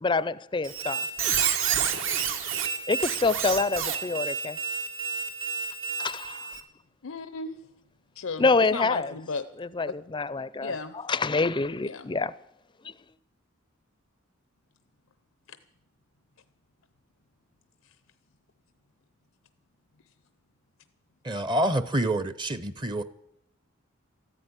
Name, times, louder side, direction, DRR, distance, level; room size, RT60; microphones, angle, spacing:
voice 1, 0.0-1.1 2.9-4.6 6.0-6.5 8.4-9.1 9.8-10.7 11.1-12.3 12.8-12.9, left 3 dB, 25° left, 0.5 m, -26 dB
Squeak, 0.6-6.6, right 7 dB, 75° right, 1.8 m, -29 dB
voice 2, 7.0-7.7 8.1-9.5 10.6-10.9 11.8-12.1 15.5-15.6 17.8-18.0, left 4 dB, 85° left, 0.7 m, -35 dB
voice 3, 21.2-23.0, right 1 dB, 20° right, 0.7 m, -27 dB
14.5 x 9.8 x 9.6 m
head